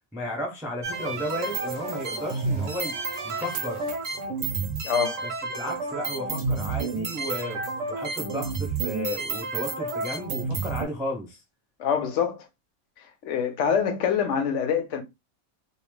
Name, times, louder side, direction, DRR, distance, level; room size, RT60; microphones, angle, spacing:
voice 1, 0.1-3.0 3.2-3.9 5.2-11.4, left 1 dB, 5° right, 0.4 m, -33 dB
sound 1, 0.8-10.8, right 4 dB, 65° right, 1.0 m, -30 dB
voice 2, 4.8-5.2 11.8-12.5 13.2-15.0, left 7 dB, 65° left, 0.9 m, -25 dB
2.6 x 2.1 x 3.1 m
omnidirectional pair, 1.5 m